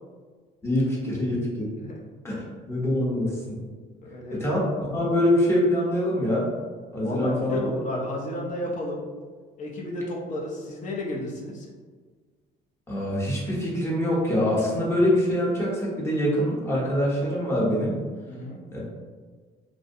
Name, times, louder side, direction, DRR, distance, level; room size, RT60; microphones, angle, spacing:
voice 1, 0.6-1.7 2.2-2.3 2.7-3.6 4.3-6.5 6.9-7.6 12.9-18.0 18.7-18.8, left 1 dB, 15° left, -6 dB, 0.8 m, -24 dB
voice 2, 4.0-4.4 7.0-9.0 9.6-11.7 18.3-18.6, left 1 dB, 45° left, -2 dB, 0.6 m, -32 dB
2.5 x 2.1 x 2.6 m, 1.5 s
cardioid pair, 110°, 17 cm